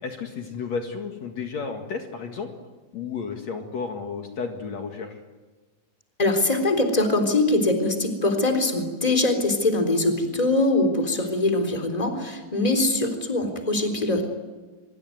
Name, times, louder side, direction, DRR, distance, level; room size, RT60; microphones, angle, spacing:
voice 1, 0.0-2.5 2.9-5.2, left 5 dB, 60° left, 4 dB, 3.1 m, -32 dB
voice 2, 6.2-14.3, left 2 dB, 10° left, 6 dB, 3.5 m, -22 dB
25.0 x 24.0 x 9.5 m, 1.3 s
omnidirectional pair, 3.6 m